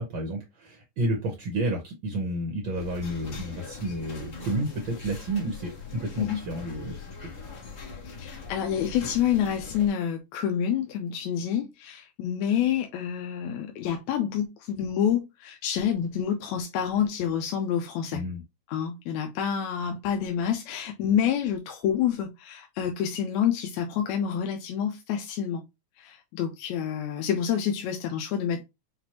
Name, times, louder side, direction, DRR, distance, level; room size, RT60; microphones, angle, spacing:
voice 1, 0.0-6.9 18.1-18.4, right 1 dB, 75° right, 1.1 m, -31 dB
sound 1, 2.7-9.9, left 5 dB, 45° left, 1.5 m, -41 dB
voice 2, 8.1-18.2 18.7-25.6 26.0-28.6, left 9 dB, 80° left, 1.8 m, -28 dB
5.9 x 2.6 x 2.8 m
omnidirectional pair, 3.4 m